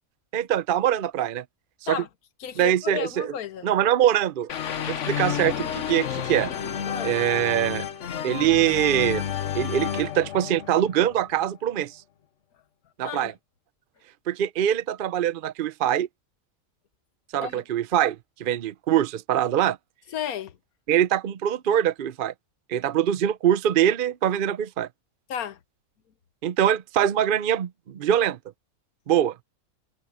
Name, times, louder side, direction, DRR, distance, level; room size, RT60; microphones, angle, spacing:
voice 1, 0.3-1.4 1.8-2.0 2.6-3.3 3.6-4.5 4.9-6.5 7.0-7.8 8.2-9.2 9.5-12.0 13.0-13.3 14.3-16.1 17.3-19.8 20.9-22.3 22.7-24.9 26.4-28.4 29.1-29.3, right 10 dB, 55° right, 0.6 m, -23 dB
voice 2, 2.4-3.7 6.9-7.1 13.0-13.3 17.4-17.6 20.1-20.6 25.3-25.6, left 9 dB, 80° left, 1.5 m, -33 dB
FX evil sting, 4.5-11.5, left 8 dB, 60° left, 1.3 m, -31 dB
omnidirectional pair, 1.5 m